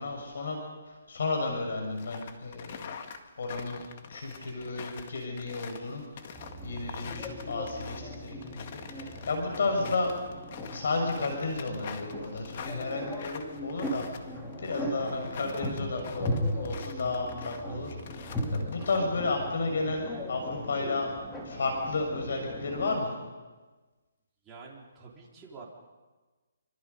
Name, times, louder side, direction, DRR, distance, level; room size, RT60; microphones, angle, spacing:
voice 1, 0.0-2.9 3.4-6.3 6.6-10.1 10.7-14.3 14.6-21.1 21.4-23.1, left 3 dB, 65° left, 3 dB, 6.2 m, -33 dB
sound 1, 1.9-19.0, left 7 dB, 35° left, 1.8 m, -45 dB
sound 2, 6.3-23.0, equal, 5° left, 2.8 m, -38 dB
voice 2, 24.4-25.6, right 4 dB, 10° right, -4 dB, 4.3 m, -48 dB
28.0 x 25.0 x 5.5 m, 1.3 s
hypercardioid pair, 170°, 0 cm